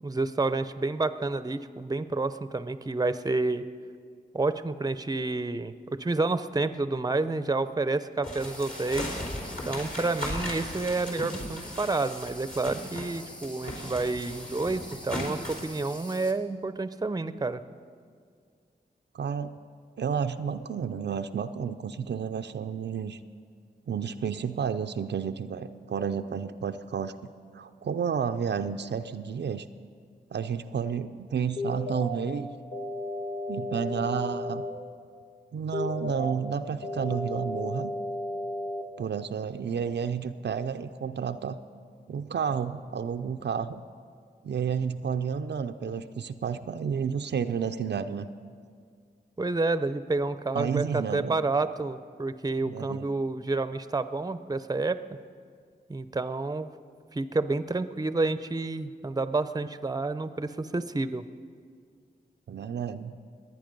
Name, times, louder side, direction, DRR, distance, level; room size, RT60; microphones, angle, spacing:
voice 1, 0.0-3.6 4.3-9.2 9.7-17.6 49.4-55.0 55.9-56.7 57.1-61.2, right 3 dB, 20° right, 12 dB, 0.6 m, -29 dB
sound 1, 8.2-13.1 13.4-15.7, left 1 dB, 50° left, 3.6 m, -37 dB
sound 2, 8.4-16.3, left 1 dB, 25° left, 2.1 m, -46 dB
voice 2, 19.1-19.5 20.0-23.2 23.9-27.2 27.5-29.6 30.3-32.5 33.5-34.6 35.5-37.9 39.0-41.6 42.1-43.8 44.4-48.3 50.5-51.3 52.7-53.1 62.5-63.1, right 7 dB, 80° right, 8 dB, 0.5 m, -31 dB
sound 3, 31.6-32.2 32.7-34.7 35.7-36.3 36.8-38.8, left 1 dB, 85° left, 1.4 m, -33 dB
22.5 x 9.3 x 5.3 m, 2.1 s
cardioid pair, 55°, 18 cm